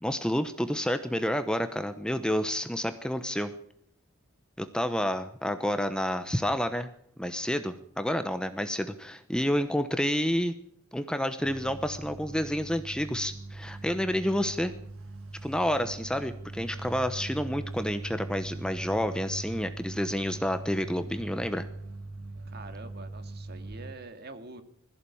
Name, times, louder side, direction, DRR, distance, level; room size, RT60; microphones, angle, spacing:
voice 1, 0.0-3.5 4.6-6.9 7.2-10.5 10.9-14.7 15.4-21.7, equal, 5° left, 9 dB, 0.9 m, -29 dB
sound 1, 11.4-23.9, right 2 dB, 75° right, 2.0 m, -41 dB
voice 2, 22.4-24.6, right 3 dB, 45° right, 8 dB, 2.2 m, -45 dB
21.0 x 15.0 x 8.6 m, 0.66 s
head